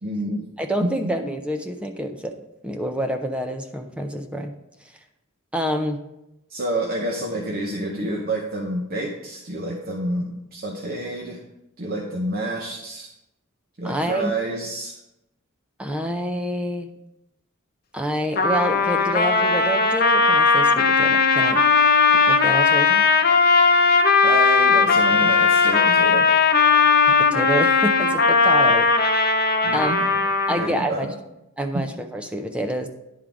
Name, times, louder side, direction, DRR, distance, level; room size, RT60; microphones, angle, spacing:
voice 1, 0.0-0.5 0.8-1.1 6.5-11.4 11.8-13.1 13.8-15.0 24.2-26.3 29.6-30.2 30.5-31.1 31.7-31.8, right 1 dB, 45° right, 1 dB, 0.7 m, -28 dB
voice 2, 0.6-2.4 2.6-4.5 5.5-6.0 13.8-14.3 15.8-16.9 17.9-21.6 22.3-23.1 27.1-28.9 29.7-29.9 30.5-31.1 31.6-32.9, equal, 5° right, 5 dB, 0.4 m, -27 dB
Trumpet, 18.4-30.8, left 4 dB, 50° left, 0.7 m, -18 dB
10.5 x 3.7 x 4.7 m, 0.89 s
head